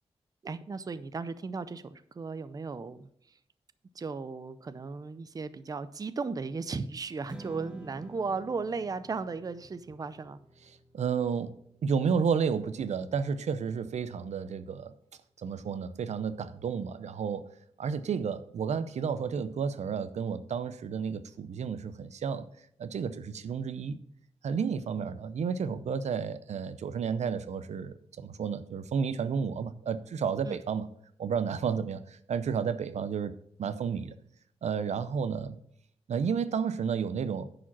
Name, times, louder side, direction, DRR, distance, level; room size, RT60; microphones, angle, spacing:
voice 1, 0.4-3.1 4.0-10.4 30.4-30.6, right 4 dB, 35° right, 14 dB, 0.5 m, -36 dB
Strum, 7.3-13.6, right 1 dB, 10° right, 0.9 m, -51 dB
voice 2, 10.9-11.5 11.8-14.9 15.4-17.5 17.8-22.5 22.8-24.0 24.4-30.9 31.2-33.3 33.6-34.2 34.6-35.6 36.1-37.5, right 6 dB, 85° right, 13 dB, 0.6 m, -31 dB
10.0 x 5.0 x 5.9 m, 0.68 s
wide cardioid pair, 135°, 11 cm